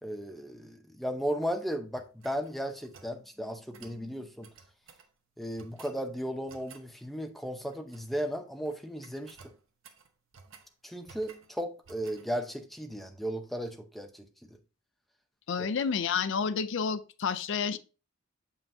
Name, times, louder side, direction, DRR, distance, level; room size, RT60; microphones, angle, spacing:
voice 1, 0.0-4.5 5.4-9.4 10.8-14.5, equal, ahead, 0.6 m, -35 dB
sound 1, 1.9-3.2 3.7-4.0 4.4-5.1 5.6-6.0 6.5-6.9 7.7-8.3 8.6-8.8 9.0-10.7 11.1-11.5 11.8-12.3, right 5 dB, 75° right, 0.9 m, -55 dB
voice 2, 15.5-17.8, left 6 dB, 65° left, 0.4 m, -30 dB
6.9 x 5.6 x 2.6 m
head